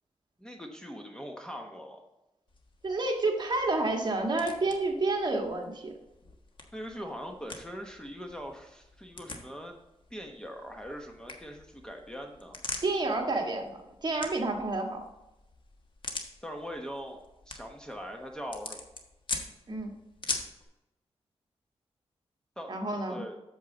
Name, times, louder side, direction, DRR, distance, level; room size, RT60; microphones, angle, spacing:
voice 1, 0.4-2.0 6.7-9.8 10.1-12.6 16.4-18.8 22.6-22.7 23.1-23.4, equal, 5° left, 3 dB, 1.0 m, -41 dB
sound 1, 2.5-20.6, left 3 dB, 45° left, 1.4 m, -44 dB
voice 2, 2.8-5.9 12.8-15.0 19.7-19.9 22.7-23.2, right 2 dB, 40° right, 1 dB, 1.7 m, -29 dB
8.4 x 7.2 x 4.0 m, 0.95 s
wide cardioid pair, 110°, 11 cm